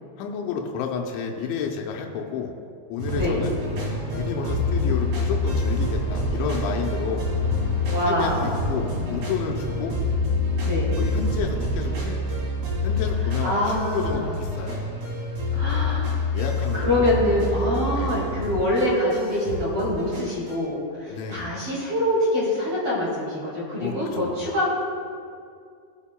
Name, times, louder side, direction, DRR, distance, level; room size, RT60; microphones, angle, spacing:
voice 1, 0.2-2.5 2.9-3.6 4.1-7.3 8.1-10.0 11.0-12.4 12.8-14.9 16.3-17.0 17.2-17.7 17.9-18.2 21.1-21.5 23.8-24.5, left 6 dB, 90° left, 1 dB, 3.0 m, -31 dB
sound 1, 3.0-20.6, left 2 dB, 70° right, 4.3 m, -27 dB
sound 2, 3.1-9.9, left 4 dB, 65° left, 2.7 m, -37 dB
voice 2, 7.9-8.6 10.6-10.9 13.4-14.3 15.5-16.2 16.7-24.7, left 1 dB, 40° right, -6 dB, 2.5 m, -25 dB
19.5 x 7.2 x 2.3 m, 2.3 s
omnidirectional pair, 5.2 m